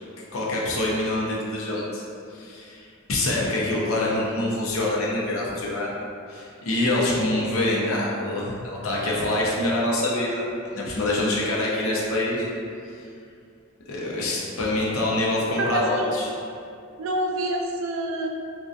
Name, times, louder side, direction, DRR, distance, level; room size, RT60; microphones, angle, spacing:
voice 1, 0.3-2.0 2.3-5.9 6.3-10.4 10.7-12.5 13.9-16.3, left 1 dB, 85° left, -4 dB, 0.5 m, -25 dB
voice 2, 15.6-16.3 17.0-18.3, right 1 dB, 75° right, 2 dB, 0.3 m, -27 dB
2.5 x 2.2 x 2.3 m, 2.4 s
head